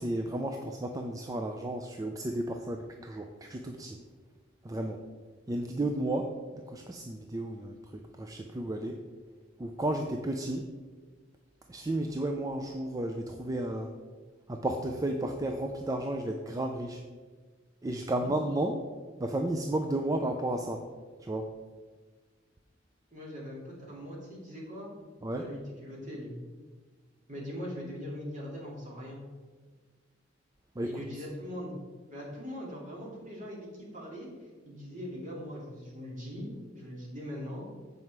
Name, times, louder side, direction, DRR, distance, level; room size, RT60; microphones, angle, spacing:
voice 1, 0.0-4.0 4.6-5.0 5.5-9.0 9.6-10.7 11.7-13.9 14.5-17.0 17.8-18.8 19.2-20.9 21.2-21.5 25.2-25.5 30.8-31.2, right 1 dB, 20° right, 4 dB, 0.4 m, -33 dB
voice 2, 23.1-24.9 25.3-26.4 27.3-29.2 30.8-31.8 32.1-34.3 34.6-36.5 36.7-37.7, equal, 40° right, -4 dB, 2.4 m, -41 dB
7.6 x 5.4 x 4.7 m, 1.4 s
head